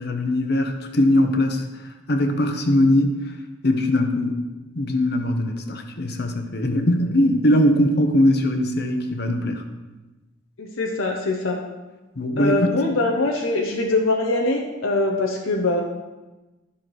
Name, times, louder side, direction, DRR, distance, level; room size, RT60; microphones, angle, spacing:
voice 1, 0.0-1.7 2.1-3.2 3.6-4.3 4.7-9.6 12.2-12.8, left 1 dB, 55° left, 6 dB, 1.0 m, -20 dB
voice 2, 10.6-11.6 12.4-15.8, left 2 dB, 90° left, 1 dB, 0.9 m, -23 dB
11.5 x 6.0 x 4.8 m, 1.1 s
head